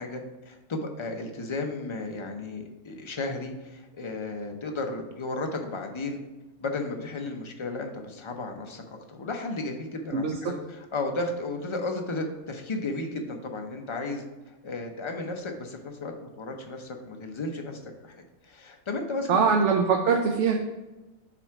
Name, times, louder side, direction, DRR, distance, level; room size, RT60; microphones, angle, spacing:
voice 1, 0.0-6.2 6.6-18.2 18.4-19.4, left 2 dB, 35° left, 3 dB, 0.5 m, -34 dB
voice 2, 19.3-20.6, right 5 dB, 65° right, 2 dB, 0.9 m, -22 dB
5.9 x 3.5 x 5.8 m, 1.1 s
omnidirectional pair, 1.4 m